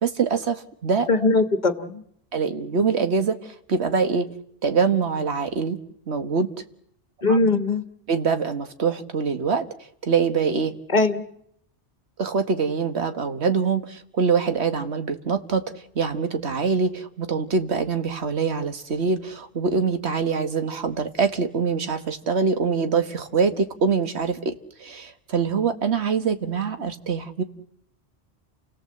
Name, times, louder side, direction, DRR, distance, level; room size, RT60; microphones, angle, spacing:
voice 1, 0.0-1.3 2.3-4.3 4.6-5.8 6.1-6.5 7.3-7.4 8.1-9.7 10.0-10.7 12.2-15.6 15.9-27.4, right 5 dB, 80° right, 8 dB, 1.7 m, -24 dB
voice 2, 1.1-2.0 7.2-7.8 10.9-11.2, left 3 dB, 45° left, 9 dB, 1.5 m, -20 dB
29.5 x 17.0 x 7.7 m, 0.74 s
omnidirectional pair, 1.1 m